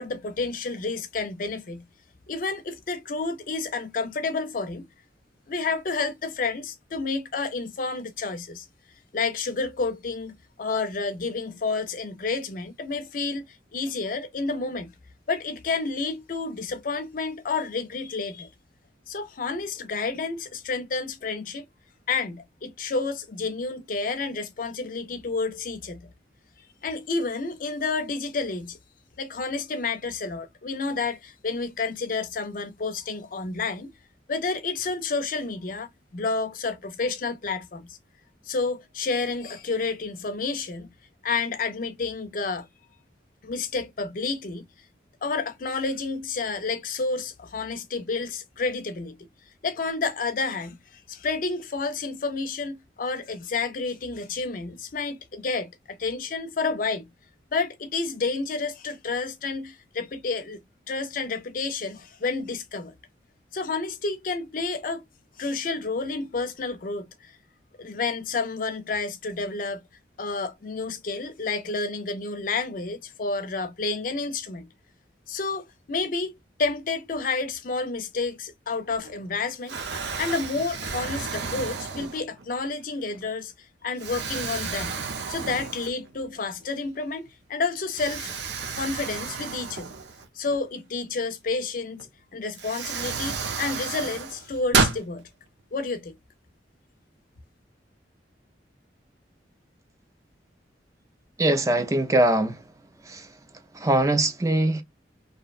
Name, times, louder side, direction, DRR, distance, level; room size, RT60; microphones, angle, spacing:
voice 1, 0.0-1.9 2.3-4.9 5.5-8.7 9.1-14.9 15.3-18.5 19.1-21.7 22.1-26.1 26.8-28.8 29.2-33.9 34.3-38.0 38.4-40.9 41.2-42.7 43.4-44.7 45.2-49.3 49.6-57.1 57.5-60.6 60.9-62.9 63.5-65.0 65.4-67.3 67.8-69.8 70.2-74.7 75.3-76.3 76.6-79.8 80.2-83.5 83.8-85.0 85.3-88.3 88.8-89.9 90.3-92.1 92.3-95.3 95.7-96.2, left 4 dB, 50° left, 0.5 m, -30 dB
Explosion, 79.0-79.3 79.7-82.5 83.1-83.3 84.0-86.2 86.6-86.7 87.9-90.6 92.0-92.1 92.5-95.0, right 5 dB, 70° right, 0.6 m, -31 dB
voice 2, 101.4-102.6 103.1-103.2 103.8-104.8, right 1 dB, 20° right, 0.4 m, -22 dB
2.7 x 2.1 x 2.3 m
head